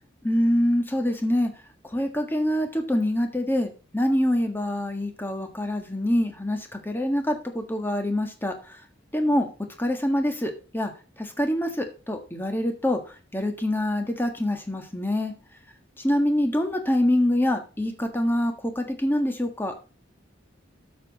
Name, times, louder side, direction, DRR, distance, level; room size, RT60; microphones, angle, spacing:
voice 1, 0.2-1.5 1.8-8.8 9.1-9.5 9.8-10.9 11.2-15.3 16.0-19.7, left 1 dB, 10° left, 5 dB, 1.6 m, -25 dB
12.5 x 6.9 x 4.1 m, 0.34 s
head